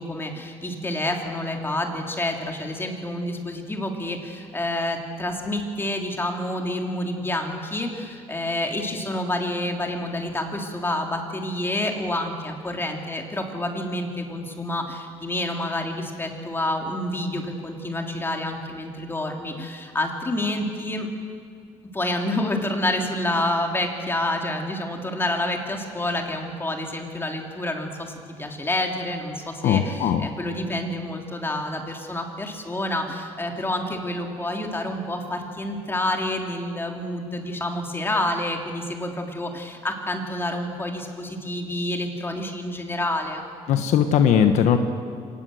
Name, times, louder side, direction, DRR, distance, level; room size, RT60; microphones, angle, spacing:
voice 1, 0.0-21.1 21.9-28.1 28.4-43.5, left 1 dB, 20° left, 2 dB, 3.4 m, -28 dB
voice 2, 29.6-30.2 43.7-44.8, left 8 dB, 75° left, 7 dB, 1.2 m, -19 dB
25.0 x 19.0 x 7.8 m, 2.3 s
cardioid pair, 95°, 12 cm